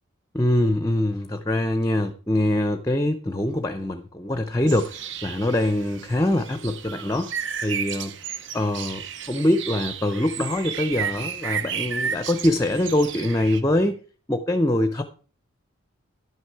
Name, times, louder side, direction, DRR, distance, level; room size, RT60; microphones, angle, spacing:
voice 1, 0.3-7.3 7.6-8.1 8.5-9.0 9.3-14.0 14.3-15.0, left 1 dB, 15° left, 0.5 m, -23 dB
sound 1, 4.7-13.6, right 7 dB, 60° right, 0.7 m, -33 dB
10.5 x 6.3 x 4.5 m
head